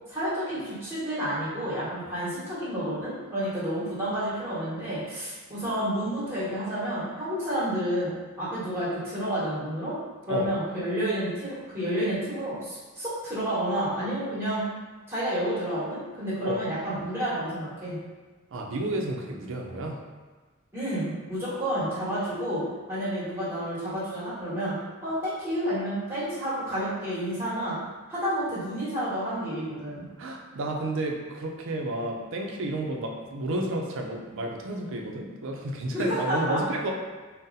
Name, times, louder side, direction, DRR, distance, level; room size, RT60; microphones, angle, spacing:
voice 1, 0.1-9.9 10.3-14.6 15.1-18.0 20.7-24.8 25.0-27.8 28.1-30.1 35.9-36.6, equal, 10° right, -10 dB, 1.2 m, -30 dB
voice 2, 18.5-20.0 30.2-36.9, right 2 dB, 65° right, 1 dB, 0.4 m, -31 dB
3.9 x 2.1 x 2.6 m, 1.3 s
head